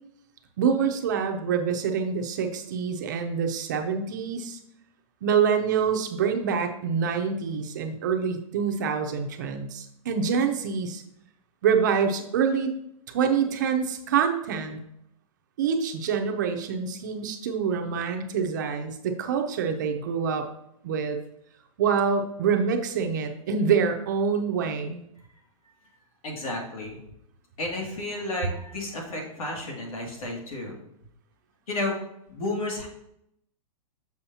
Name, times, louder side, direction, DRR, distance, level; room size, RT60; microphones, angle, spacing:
voice 1, 0.6-4.6 5.2-11.0 11.6-12.7 13.1-14.8 15.6-20.5 20.8-21.2 21.8-25.0, right 6 dB, 30° right, 5 dB, 0.5 m, -26 dB
voice 2, 26.2-27.0 27.6-30.8 31.7-32.0 32.3-32.9, left 2 dB, 70° left, -1 dB, 2.3 m, -32 dB
7.0 x 6.1 x 2.8 m, 0.78 s
hypercardioid pair, 180°, 19 cm